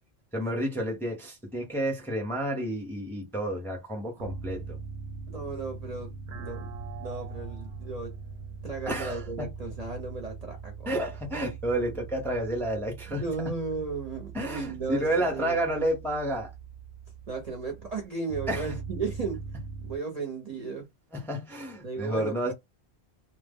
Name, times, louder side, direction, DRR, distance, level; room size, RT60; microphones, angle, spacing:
voice 1, 0.3-4.8 8.9-9.5 10.8-13.2 14.3-16.5 18.5-18.7 21.1-22.5, right 1 dB, ahead, 0.5 m, -30 dB
sound 1, 4.2-20.0, right 5 dB, 75° right, 0.8 m, -41 dB
voice 2, 5.3-6.7 7.0-8.1 8.6-10.9 13.1-15.6 17.3-19.4 19.8-20.8 21.8-22.5, right 4 dB, 45° right, 0.6 m, -35 dB
2.1 x 2.0 x 3.4 m
omnidirectional pair, 1.1 m